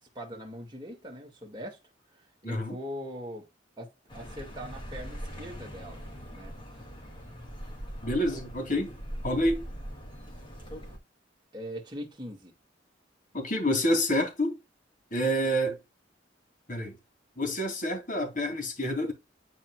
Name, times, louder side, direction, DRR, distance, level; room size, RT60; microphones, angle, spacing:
voice 1, 0.1-1.8 2.2-3.4 3.8-6.0 6.3-6.5 11.5-12.5, equal, 25° right, 2.1 m, -41 dB
voice 2, 2.4-2.8 8.0-8.9 9.2-9.6 13.3-14.6 15.1-15.8 16.7-17.0 17.4-19.1, equal, 45° left, 3.1 m, -28 dB
Accelerating revving vroom, 4.1-11.0, equal, 25° left, 2.5 m, -41 dB
10.0 x 4.7 x 2.4 m
head